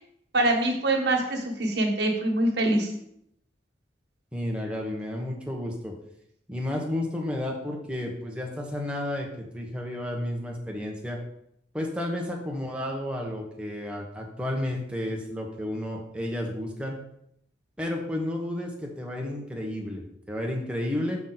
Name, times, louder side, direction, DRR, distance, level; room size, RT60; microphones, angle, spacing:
voice 1, 0.3-2.9, right 1 dB, 65° right, 0 dB, 1.6 m, -24 dB
voice 2, 4.3-5.9 6.5-11.2 11.7-17.0 17.8-21.2, left 1 dB, 5° right, -1 dB, 1.2 m, -32 dB
6.1 x 6.0 x 4.0 m, 0.73 s
head